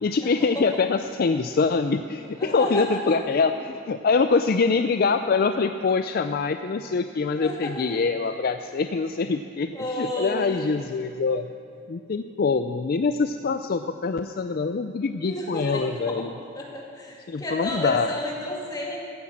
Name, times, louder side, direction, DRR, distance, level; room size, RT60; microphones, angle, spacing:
voice 1, 0.0-11.5 11.9-16.3 17.3-18.1, left 4 dB, 50° left, 9 dB, 0.4 m, -24 dB
voice 2, 2.2-3.2 7.4-7.7 9.7-10.8 15.2-16.2 16.6-19.0, left 1 dB, 20° left, -3 dB, 2.3 m, -32 dB
15.5 x 9.8 x 7.3 m, 2.4 s
head